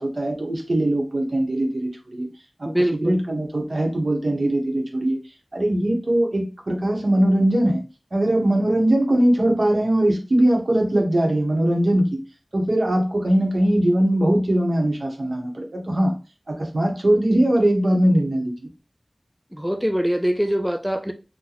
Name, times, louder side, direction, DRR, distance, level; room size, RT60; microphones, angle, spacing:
voice 1, 0.0-2.3 2.6-2.7 3.0-5.2 5.5-7.8 8.1-12.1 12.5-16.1 16.5-18.7, right 1 dB, 75° right, 0.8 m, -21 dB
voice 2, 2.7-3.2 19.5-21.1, equal, 5° right, 0.3 m, -23 dB
2.9 x 2.1 x 3.8 m
wide cardioid pair, 55°, 0 cm